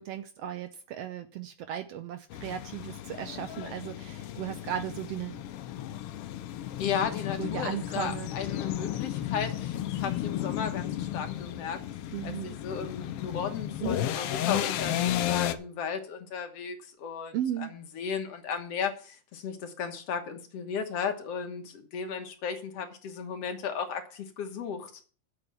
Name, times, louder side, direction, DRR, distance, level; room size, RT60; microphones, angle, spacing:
voice 1, 0.0-5.4 7.4-8.3 12.1-12.5 13.8-14.0 17.3-17.8, right 10 dB, 75° right, 1.4 m, -36 dB
sound 1, 2.3-15.5, left 12 dB, 90° left, 1.3 m, -33 dB
voice 2, 6.8-11.8 12.2-17.3 17.6-24.9, left 6 dB, 60° left, 2.1 m, -35 dB
8.1 x 6.8 x 8.1 m
omnidirectional pair, 3.5 m